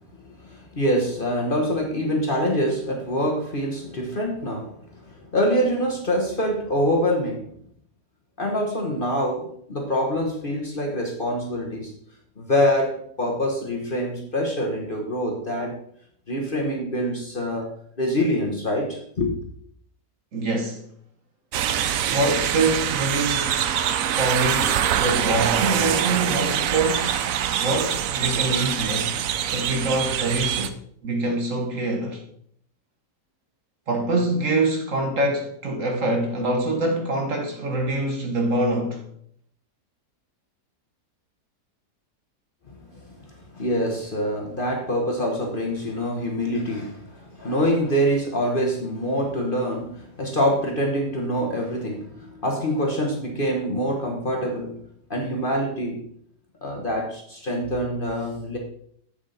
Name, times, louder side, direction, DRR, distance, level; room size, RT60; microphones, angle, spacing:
voice 1, 0.2-5.0 5.3-7.5 8.4-11.9 12.4-15.8 16.3-17.7 18.0-19.3 42.9-54.8 55.1-56.0 56.6-58.6, equal, 35° left, 1.2 m, -25 dB
voice 2, 20.3-20.8 22.1-23.6 24.1-27.2 27.6-29.2 29.5-32.2 33.9-39.0, right 2 dB, 50° right, 1.5 m, -25 dB
sound 1, 21.5-30.7, right 9 dB, 65° right, 0.9 m, -24 dB
7.9 x 7.1 x 4.2 m
omnidirectional pair, 1.8 m